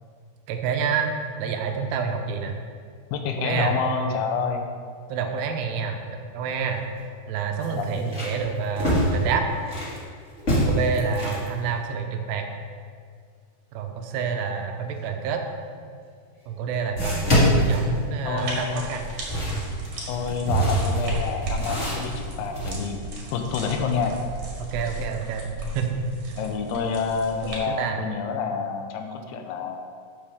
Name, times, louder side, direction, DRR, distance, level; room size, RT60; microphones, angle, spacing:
voice 1, 0.5-2.6 3.4-3.7 5.1-6.0 6.3-6.8 7.3-9.4 10.7-12.5 13.7-15.4 16.5-19.1 24.6-25.5 25.7-26.0 27.7-28.0, right 6 dB, 85° right, 4 dB, 2.9 m, -28 dB
voice 2, 3.1-4.7 7.7-8.1 18.3-18.9 20.1-23.0 23.3-24.2 26.4-29.8, left 5 dB, 80° left, 4 dB, 2.7 m, -28 dB
sound 1, 6.4-6.5 6.9-7.0 7.6-10.0 10.4-11.5 15.7-15.8 16.9-18.5 19.0-22.7, equal, 25° left, 1.7 m, -25 dB
sound 2, 18.4-27.6, right 2 dB, 45° right, 2.5 m, -35 dB
13.0 x 7.8 x 3.6 m, 2.1 s
omnidirectional pair, 4.7 m